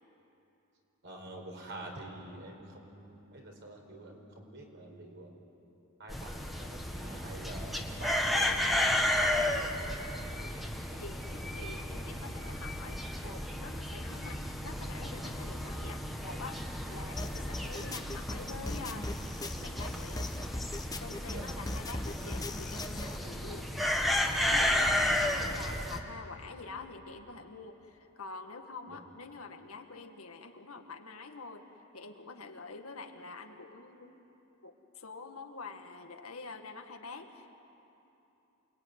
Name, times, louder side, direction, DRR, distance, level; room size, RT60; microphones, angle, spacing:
voice 1, 1.0-5.3 6.0-6.3 6.6-9.1 9.4-10.0 10.6-11.0 21.3-21.4 24.9-25.1 28.9-29.0, right 1 dB, 55° right, 2 dB, 4.6 m, -47 dB
sound 1, 6.1-26.0, left 1 dB, ahead, 1.6 m, -33 dB
voice 2, 10.3-16.6 16.9-19.1 19.6-20.3 21.0-23.7 24.4-31.7 31.9-34.2 34.6-37.5, left 4 dB, 85° left, 5 dB, 1.9 m, -46 dB
sound 2, 17.2-23.2, left 1 dB, 15° left, 0.9 m, -39 dB
28.0 x 21.0 x 9.6 m, 3.0 s
head